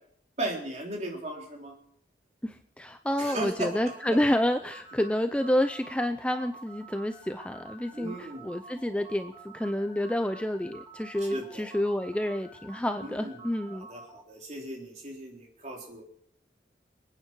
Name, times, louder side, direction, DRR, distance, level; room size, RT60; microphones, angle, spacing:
voice 1, 0.4-1.7 3.2-4.2 7.9-8.4 11.3-11.7 13.0-13.4 13.7-16.0, right 1 dB, 40° right, 0 dB, 3.8 m, -37 dB
voice 2, 2.4-13.9, left 1 dB, 5° left, 8 dB, 0.5 m, -29 dB
sound 1, 3.7-14.2, right 3 dB, 25° right, 4.1 m, -49 dB
27.0 x 9.5 x 4.7 m, 0.63 s
head